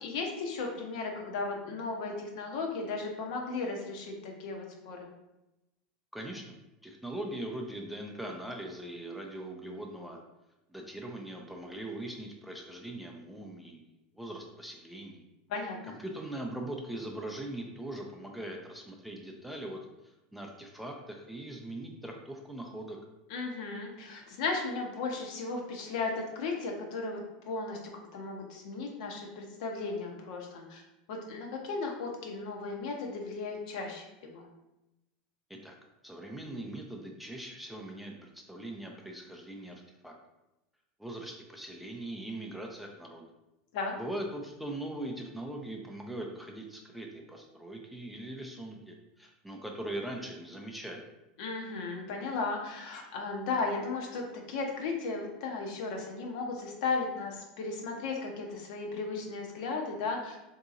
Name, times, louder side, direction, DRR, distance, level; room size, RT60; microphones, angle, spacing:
voice 1, 0.0-5.0 15.5-16.0 23.3-27.2 27.5-27.8 28.1-30.8 31.1-34.5 43.7-43.9 51.4-60.3, left 3 dB, 65° left, 1 dB, 0.7 m, -35 dB
voice 2, 6.1-6.4 6.8-10.2 10.7-15.2 15.8-23.0 35.5-35.7 36.0-40.1 41.0-43.3 44.0-51.1, right 1 dB, ahead, 0 dB, 0.4 m, -41 dB
3.8 x 2.8 x 2.5 m, 0.96 s
supercardioid pair, 130°, 4 cm